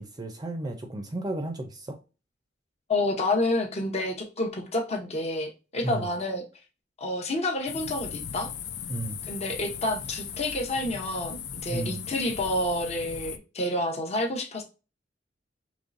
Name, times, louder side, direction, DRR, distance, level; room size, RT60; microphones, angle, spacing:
voice 1, 0.0-2.0 5.8-6.1 8.9-9.2 11.7-12.0, right 1 dB, 20° right, 0.5 m, -33 dB
voice 2, 2.9-6.4 7.0-8.5 9.3-14.6, left 1 dB, 35° left, 0.8 m, -29 dB
sound 1, 7.7-13.4, left 8 dB, 65° left, 0.5 m, -38 dB
5.3 x 3.1 x 2.5 m
head